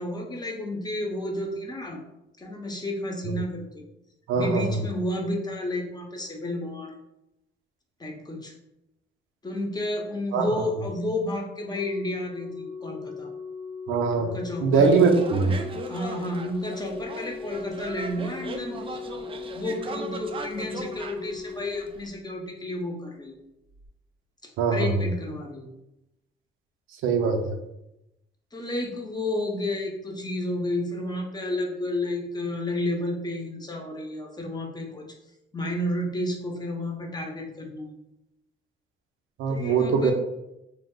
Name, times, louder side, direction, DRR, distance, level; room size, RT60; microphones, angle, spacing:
voice 1, 0.0-2.0 2.4-3.8 4.3-6.9 8.0-8.5 9.4-13.3 14.2-14.9 15.4-19.2 19.5-23.3 24.7-25.7 28.5-35.0 35.5-37.9 39.5-40.1, left 1 dB, 20° left, 0 dB, 0.7 m, -31 dB
voice 2, 4.3-4.8 10.3-10.5 13.9-14.3 14.6-15.5 24.6-25.0 27.0-27.5 39.4-40.1, right 5 dB, 90° right, 4 dB, 0.5 m, -22 dB
Organ, 11.7-22.6 23.7-23.9, left 5 dB, 10° right, 0.9 m, -39 dB
sound 1, 14.8-22.1, right 3 dB, 25° right, 0.3 m, -38 dB
3.1 x 2.0 x 3.6 m, 0.89 s
cardioid pair, 90°, 20 cm